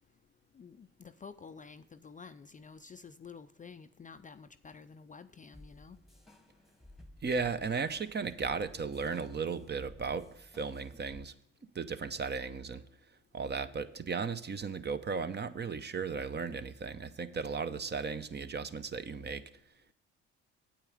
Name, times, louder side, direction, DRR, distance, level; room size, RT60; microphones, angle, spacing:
voice 1, 0.5-6.0, left 5 dB, 25° left, 0.5 m, -50 dB
sound 1, 5.5-11.2, left 1 dB, ahead, 1.2 m, -56 dB
voice 2, 7.2-11.3 11.7-12.8 13.3-19.4, right 5 dB, 30° right, 0.8 m, -36 dB
8.8 x 8.5 x 5.0 m
hypercardioid pair, 55°, 35 cm